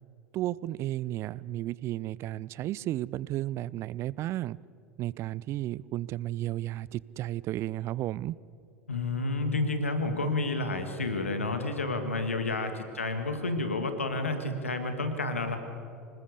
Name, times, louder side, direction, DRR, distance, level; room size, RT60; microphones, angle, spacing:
voice 1, 0.3-4.6 5.0-8.3, right 14 dB, 40° right, 22 dB, 0.5 m, -33 dB
voice 2, 8.9-15.6, left 2 dB, 80° left, 7 dB, 2.1 m, -30 dB
26.0 x 19.5 x 6.9 m, 2.5 s
figure-of-eight pair, 75°, 7 cm